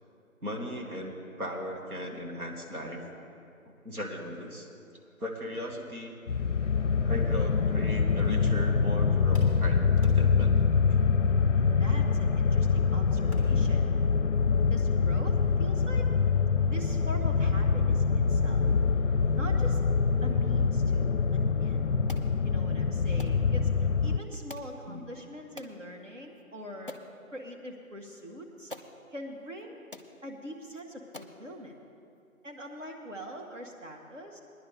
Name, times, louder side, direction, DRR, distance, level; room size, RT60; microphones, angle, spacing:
voice 1, 0.4-3.0 3.8-4.7 5.2-6.1 7.0-10.5 18.6-18.8 24.9-25.1, equal, 85° right, 0 dB, 2.1 m, -37 dB
sound 1, 6.3-24.2, left 5 dB, 60° left, 0.5 m, -25 dB
sound 2, 7.7-8.8 9.3-11.8 13.3-13.7, equal, 25° right, 1.4 m, -52 dB
voice 2, 11.5-13.9 14.7-16.1 16.7-18.6 19.4-19.8 20.2-21.9 22.4-26.9 27.3-28.7 29.1-29.8 30.2-31.7 32.4-34.4, equal, 60° right, 1 dB, 1.7 m, -43 dB
sound 3, 22.1-22.3 23.2-23.4 24.5-24.7 25.6-25.8 26.4-26.5 26.9-27.1 28.2-28.3 28.7-28.9 29.6-29.7 29.9-30.1 30.7-30.8 31.1-31.4, left 2 dB, 40° right, 0.4 m, -45 dB
17.5 x 10.5 x 3.6 m, 2.6 s
figure-of-eight pair, 170°, 43 cm